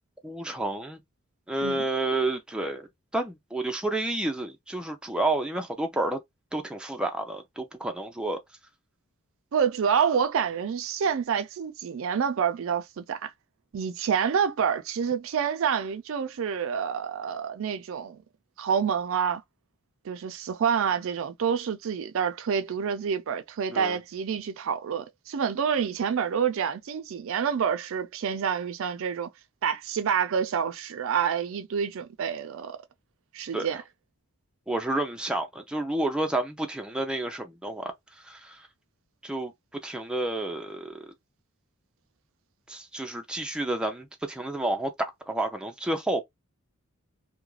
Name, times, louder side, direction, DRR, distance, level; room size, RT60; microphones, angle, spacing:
voice 1, 0.2-1.0 1.5-2.9 3.1-6.2 6.5-8.4 23.7-24.0 33.5-33.7 34.7-37.9 38.3-38.6 39.2-39.5 39.8-41.1 42.7-46.2, right 2 dB, 5° right, 0.4 m, -30 dB
voice 2, 9.5-13.3 13.7-18.2 18.6-19.4 20.0-29.3 29.6-32.8 33.3-33.8, right 7 dB, 65° right, 0.4 m, -28 dB
2.4 x 2.1 x 3.1 m
head